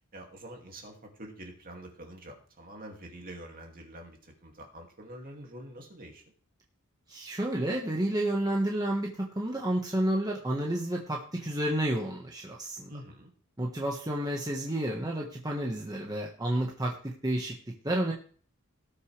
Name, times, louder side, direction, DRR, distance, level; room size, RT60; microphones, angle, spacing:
voice 1, 0.1-6.2 12.9-13.3, right 1 dB, 40° right, 1 dB, 2.4 m, -46 dB
voice 2, 7.1-12.9 13.6-17.5 17.8-18.1, right 1 dB, 15° right, -1 dB, 1.4 m, -30 dB
18.0 x 6.7 x 3.4 m, 0.43 s
head